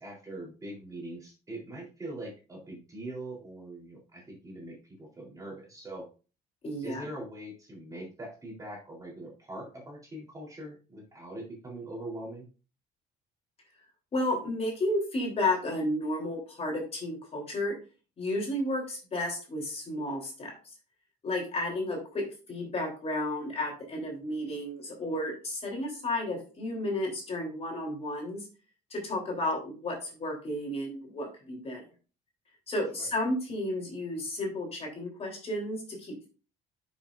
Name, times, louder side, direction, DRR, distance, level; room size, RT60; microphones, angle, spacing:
voice 1, 0.0-6.1 6.8-12.5 32.9-33.1, right 1 dB, 20° right, -2 dB, 3.6 m, -42 dB
voice 2, 6.6-7.1 14.1-17.7 18.2-20.5 21.2-28.5 28.9-31.8 32.7-36.3, left 1 dB, 35° left, 0 dB, 3.4 m, -32 dB
10.0 x 6.2 x 2.5 m, 0.35 s
cardioid pair, 110°, 17 cm